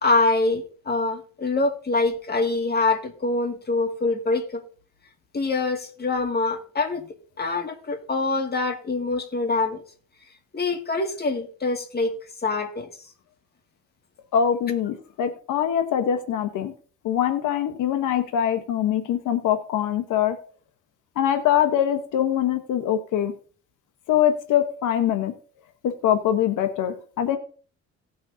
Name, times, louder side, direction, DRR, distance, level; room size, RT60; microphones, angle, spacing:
voice 1, 0.0-4.6 5.3-7.0 7.4-9.8 10.5-12.1 12.4-12.9, left 3 dB, 30° left, 4 dB, 2.1 m, -24 dB
voice 2, 14.3-16.7 17.0-20.4 21.2-23.3 24.1-25.3 25.8-27.4, left 10 dB, 85° left, 7 dB, 1.1 m, -23 dB
17.5 x 6.2 x 2.7 m, 0.42 s
cardioid pair, 90°, 30 cm